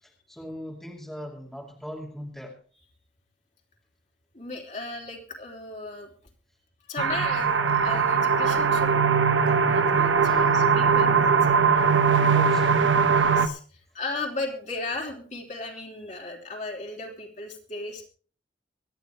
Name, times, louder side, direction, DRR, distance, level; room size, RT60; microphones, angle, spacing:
voice 1, 0.0-2.6 10.2-10.6 12.2-12.9, equal, ahead, -1 dB, 2.4 m, -40 dB
voice 2, 4.3-6.1 6.9-8.9 9.4-11.9 13.2-18.1, left 2 dB, 40° left, 1 dB, 3.3 m, -36 dB
sound 1, 7.0-13.5, right 5 dB, 85° right, 1.0 m, -21 dB
24.5 x 10.0 x 3.3 m, 0.40 s
head